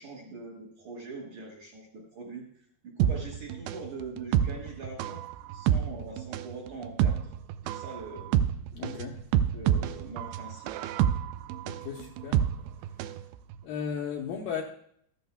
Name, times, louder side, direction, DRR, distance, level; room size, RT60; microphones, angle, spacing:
voice 1, 0.0-5.2 5.5-7.3 7.6-8.4 9.5-10.7, right 3 dB, 60° right, -3 dB, 2.0 m, -43 dB
sound 1, 3.0-13.2 13.5-13.6, right 10 dB, 85° right, 2.4 m, -28 dB
voice 2, 8.7-9.3 11.6-12.5 13.6-14.6, left 7 dB, 75° left, 0 dB, 2.1 m, -35 dB
13.5 x 13.5 x 2.2 m, 0.66 s
omnidirectional pair, 4.8 m